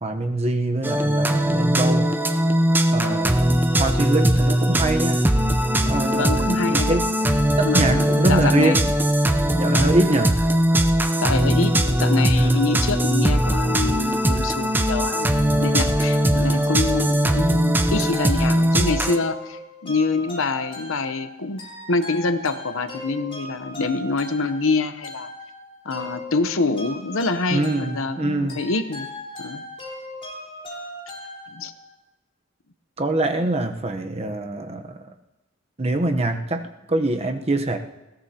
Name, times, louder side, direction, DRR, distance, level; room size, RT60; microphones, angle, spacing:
voice 1, 0.0-2.1 2.9-5.2 5.8-7.1 7.6-8.9 9.5-10.4 12.4-12.9 27.5-28.6 33.0-35.1 35.8-37.8, right 2 dB, 30° right, 5 dB, 0.9 m, -24 dB
sound 1, 0.8-19.2, right 1 dB, 10° right, 0.6 m, -20 dB
voice 2, 3.0-3.3 6.1-7.0 7.6-8.9 9.7-10.0 11.2-25.3 25.8-29.1 29.4-29.6 31.5-31.7, left 3 dB, 85° left, 10 dB, 0.9 m, -26 dB
sound 2, 18.1-31.9, left 1 dB, 30° left, 4.3 m, -38 dB
20.5 x 17.0 x 2.9 m, 1.0 s
head